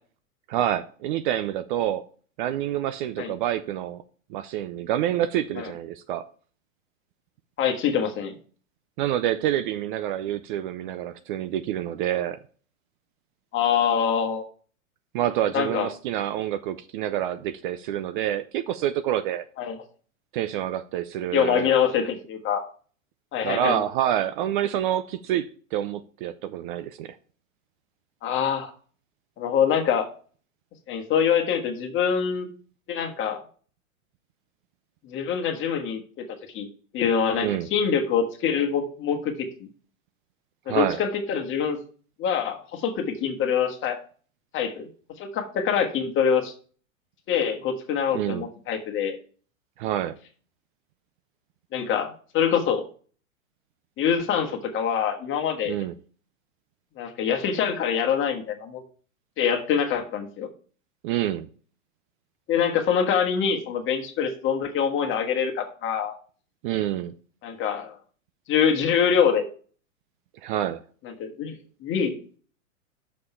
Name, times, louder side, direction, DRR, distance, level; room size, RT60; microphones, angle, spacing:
voice 1, 0.5-2.0 2.4-4.0 4.3-6.3 9.0-12.4 15.1-19.5 20.3-21.7 23.4-27.2 37.4-37.7 40.7-41.0 48.1-48.4 49.8-50.2 55.7-55.9 61.0-61.5 66.6-67.1 70.4-70.8, right 11 dB, 40° right, 0.4 m, -27 dB
voice 2, 7.6-8.3 13.5-14.4 15.5-15.9 19.6-19.8 21.3-22.6 23.3-23.8 28.2-28.7 29.4-30.0 30.9-32.5 32.9-33.4 35.0-36.2 36.5-36.7 36.9-39.5 40.6-41.8 42.2-44.0 44.5-44.9 45.2-46.5 47.3-49.2 51.7-52.8 54.0-55.7 57.0-58.8 59.4-60.5 62.5-66.2 67.4-68.0 68.5-69.4 71.0-71.5 71.8-72.1, left 7 dB, 30° left, 1.4 m, -24 dB
6.5 x 5.3 x 5.6 m
hypercardioid pair, 115°, 41 cm